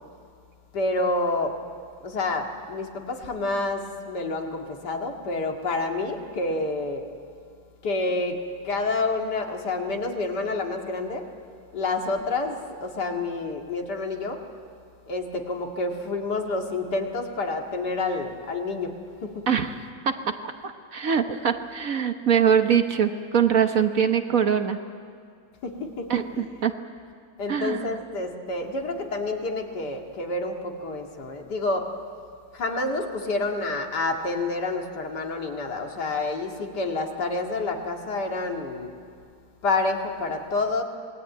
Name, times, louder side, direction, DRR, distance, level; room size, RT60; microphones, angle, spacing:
voice 1, 0.7-1.6 2.0-7.1 7.8-11.3 11.7-14.4 15.1-19.5 25.6-26.7 27.4-31.9 32.5-38.9 39.6-40.8, left 2 dB, 60° left, 2 dB, 2.7 m, -28 dB
voice 2, 20.6-24.8 26.1-26.7 27.5-27.9, right 7 dB, 50° right, 7 dB, 1.3 m, -23 dB
26.5 x 20.0 x 9.3 m, 2.2 s
omnidirectional pair, 2.1 m